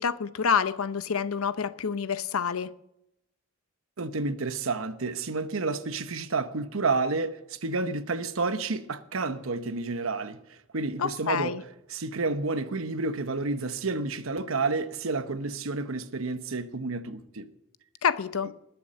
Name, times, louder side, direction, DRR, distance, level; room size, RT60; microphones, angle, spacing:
voice 1, 0.0-2.7 11.0-11.6 18.0-18.5, left 6 dB, 85° left, 0.7 m, -27 dB
voice 2, 4.0-11.6 11.9-17.5, right 3 dB, 75° right, 1.0 m, -30 dB
20.5 x 7.0 x 6.4 m
head